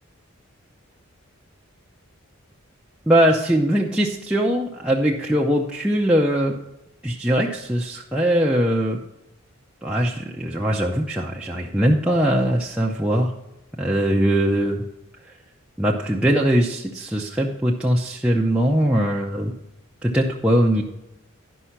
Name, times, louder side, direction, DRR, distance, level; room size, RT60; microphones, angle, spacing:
voice 1, 3.1-6.6 7.0-9.0 9.8-13.3 13.8-14.8 15.8-19.5 20.0-20.8, equal, 5° right, -3 dB, 0.5 m, -21 dB
11.5 x 5.5 x 5.8 m, 0.91 s
head